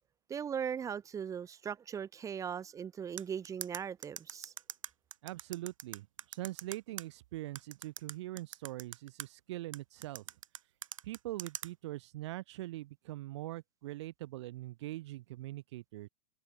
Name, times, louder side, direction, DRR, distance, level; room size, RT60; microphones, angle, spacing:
voice 1, 0.3-4.5, right 7 dB, 20° right, 1.8 m, -39 dB
sound 1, 3.2-7.0 7.6-9.3 9.7-11.7, right 9 dB, 80° right, 2.0 m, -43 dB
voice 2, 5.2-10.2 11.0-16.1, right 17 dB, 60° right, 0.9 m, -42 dB
hypercardioid pair, 120°, 16 cm